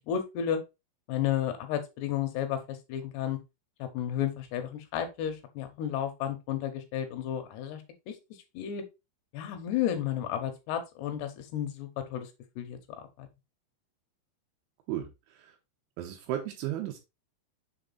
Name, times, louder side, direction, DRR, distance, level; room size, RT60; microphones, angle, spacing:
voice 1, 0.1-0.6 1.1-3.4 3.8-8.2 8.5-8.8 9.3-12.3 12.6-12.8 13.2-13.3, left 10 dB, 75° left, 7 dB, 2.7 m, -32 dB
voice 2, 14.9-15.6 16.0-17.0, right 12 dB, 85° right, 2 dB, 3.3 m, -35 dB
7.1 x 3.7 x 3.9 m, 0.25 s
omnidirectional pair, 5.5 m